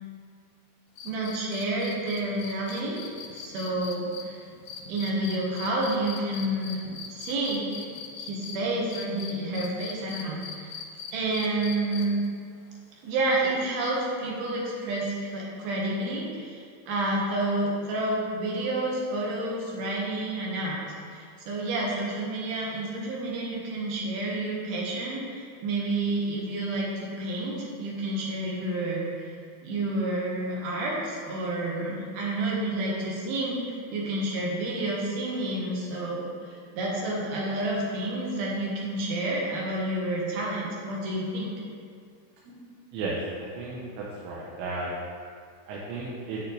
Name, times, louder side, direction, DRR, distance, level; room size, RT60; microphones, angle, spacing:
sound 1, 1.0-8.6 8.9-12.3 13.9-14.0, left 7 dB, 75° left, 1.9 m, -40 dB
voice 1, 1.0-3.0 3.3-4.4 4.9-6.8 7.1-7.9 8.2-10.7 11.1-12.2 13.0-20.8 21.1-29.3 29.6-41.6 42.5-42.6, right 2 dB, 65° right, -4 dB, 3.0 m, -29 dB
voice 2, 43.5-44.9 45.7-46.4, right 3 dB, 80° right, -5 dB, 3.3 m, -34 dB
9.6 x 8.9 x 3.3 m, 2.2 s
omnidirectional pair, 5.2 m